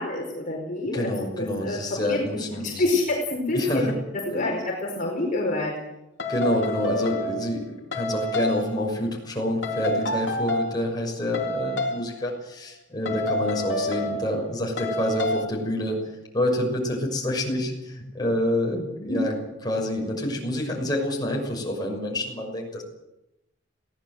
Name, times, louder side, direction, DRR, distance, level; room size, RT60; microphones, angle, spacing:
voice 1, 0.0-3.9 4.2-5.8 18.7-19.2, left 2 dB, 45° left, -1 dB, 4.6 m, -27 dB
voice 2, 0.9-2.8 3.5-3.9 6.3-7.6 7.9-16.0 16.3-18.8 19.0-19.3 19.6-22.8, left 1 dB, 20° left, 0 dB, 6.1 m, -27 dB
sound 1, 6.2-7.6 7.9-8.8 9.6-10.9 11.3-12.1 13.1-14.5 14.8-15.5, left 1 dB, 65° left, 3.1 m, -28 dB
22.0 x 17.5 x 7.8 m, 0.90 s
head